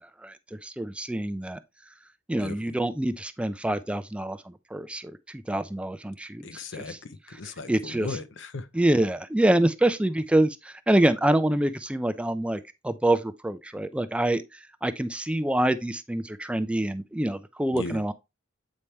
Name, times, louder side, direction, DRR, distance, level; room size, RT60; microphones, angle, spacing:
voice 1, 0.2-1.6 2.3-6.6 6.9-7.0 7.7-8.1 8.7-18.1, right 1 dB, 5° right, 0.3 m, -26 dB
voice 2, 2.4-2.8 6.4-8.7 17.7-18.0, left 3 dB, 65° left, 0.7 m, -37 dB
8.4 x 4.3 x 3.3 m
head